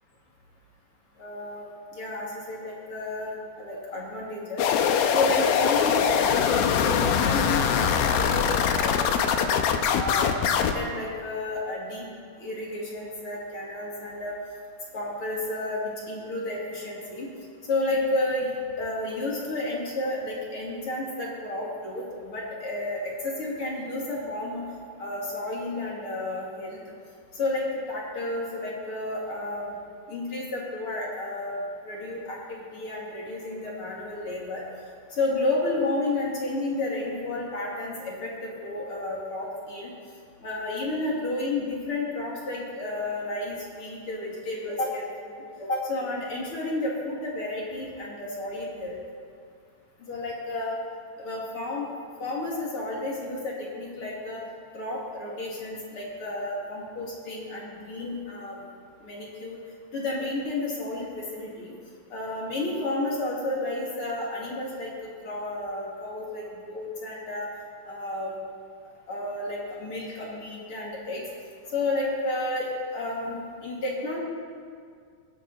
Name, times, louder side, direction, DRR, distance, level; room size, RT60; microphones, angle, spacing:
voice 1, 1.2-1.7 1.9-3.3 3.6-4.7 5.1-9.6 10.0-12.1 12.4-14.4 14.9-17.3 17.6-24.6 25.0-26.8 27.3-29.7 30.1-34.6 35.1-39.9 40.4-48.9 50.1-50.8 51.2-51.9 52.2-54.4 54.7-58.7 59.0-59.6 59.9-61.7 62.1-64.9 65.2-67.5 67.9-68.3 69.1-71.2 71.7-74.2, left 2 dB, 40° left, -4 dB, 2.7 m, -31 dB
sound 1, 4.6-10.7, left 7 dB, 75° left, 2.5 m, -23 dB
23.0 x 11.5 x 4.2 m, 2.2 s
omnidirectional pair, 4.7 m